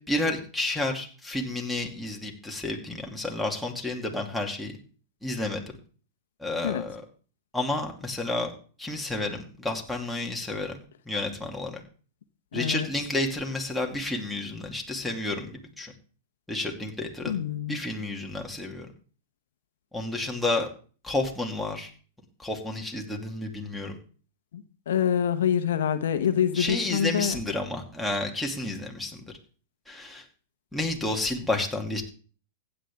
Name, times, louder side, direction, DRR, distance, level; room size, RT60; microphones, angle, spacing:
voice 1, 0.1-4.7 5.2-5.8 6.4-7.0 7.5-8.5 8.8-10.8 11.1-11.8 12.5-15.9 16.5-17.4 17.7-18.9 19.9-20.7 21.0-21.9 22.4-24.0 26.5-29.3 29.9-30.2 30.7-32.0, left 2 dB, 5° left, 0 dB, 2.5 m, -30 dB
voice 2, 12.5-12.9 17.3-17.8 24.5-27.4, left 9 dB, 75° left, 10 dB, 0.9 m, -26 dB
15.0 x 9.0 x 3.5 m, 0.39 s
hypercardioid pair, 110°, 0 cm